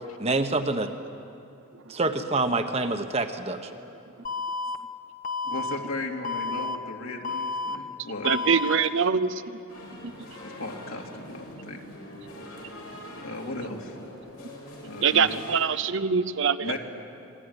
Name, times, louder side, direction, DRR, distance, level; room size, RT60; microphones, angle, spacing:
voice 1, 0.2-0.9 1.9-3.6, right 2 dB, 30° right, 6 dB, 1.2 m, -26 dB
Alarm, 4.2-4.7 5.2-5.7 6.2-6.7 7.2-7.7 8.2-8.7, left 3 dB, 35° left, 1.1 m, -30 dB
voice 2, 5.4-8.8 10.4-11.8 13.2-14.0 14.8-15.4 16.6-16.8, left 2 dB, 65° left, 1 dB, 2.9 m, -36 dB
voice 3, 8.2-9.4 15.0-16.8, right 6 dB, 55° right, 14 dB, 0.7 m, -23 dB
sound 1, 9.7-15.6, left 1 dB, 90° left, 7.2 m, -43 dB
27.0 x 21.0 x 9.9 m, 2.8 s
head